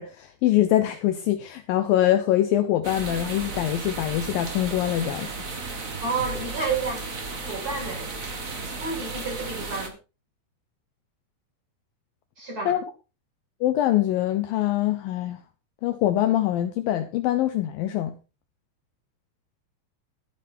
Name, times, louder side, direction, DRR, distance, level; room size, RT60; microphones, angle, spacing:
voice 1, 0.0-5.3 12.7-12.8 13.6-15.4 15.8-18.1, left 13 dB, 75° left, 2.4 m, -24 dB
sound 1, 2.8-9.9, right 3 dB, 65° right, 0.8 m, -34 dB
voice 2, 6.0-7.0 7.5-8.1 8.8-10.0 12.4-12.8, right 4 dB, 20° right, 8.3 m, -30 dB
13.0 x 9.8 x 4.4 m
omnidirectional pair, 4.5 m